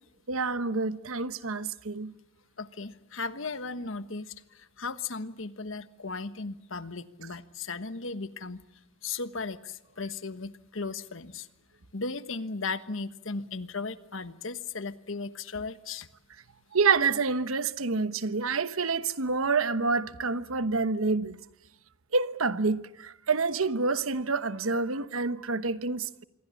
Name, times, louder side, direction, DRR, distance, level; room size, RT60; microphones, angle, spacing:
voice 1, 0.3-2.1 16.7-21.4 22.1-26.2, right 4 dB, 85° right, 1.1 m, -28 dB
voice 2, 2.6-4.3 4.8-8.6 9.0-11.5 11.9-16.1, left 4 dB, 65° left, 1.3 m, -36 dB
27.0 x 22.5 x 8.5 m
head